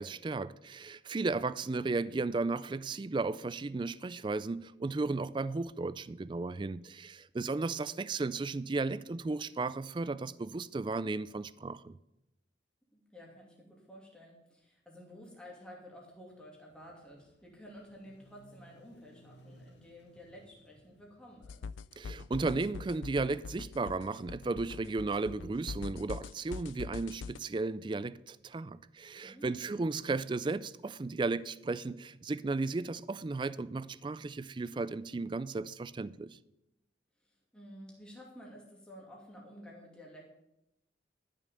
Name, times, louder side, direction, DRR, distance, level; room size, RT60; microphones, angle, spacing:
voice 1, 0.0-12.0 22.0-36.4, right 3 dB, 25° right, 0.3 m, -34 dB
voice 2, 1.1-1.5 1.8-1.9 12.9-21.6 29.2-30.2 37.2-40.3, equal, 5° left, 2.5 m, -52 dB
sound 1, 16.7-29.8, right 1 dB, 65° left, 1.5 m, -64 dB
sound 2, 21.4-27.4, left 5 dB, 85° left, 0.4 m, -43 dB
13.0 x 6.3 x 6.8 m
head